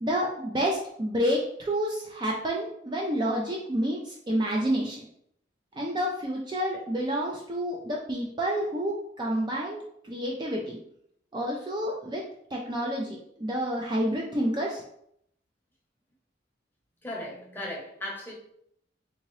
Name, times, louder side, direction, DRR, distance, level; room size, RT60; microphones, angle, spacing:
voice 1, 0.0-5.1 5.7-10.8 11.3-12.2 12.5-14.8, equal, 25° right, -1 dB, 0.4 m, -29 dB
voice 2, 17.0-18.3, left 1 dB, 10° left, -3 dB, 0.9 m, -36 dB
3.6 x 2.8 x 3.1 m, 0.70 s
head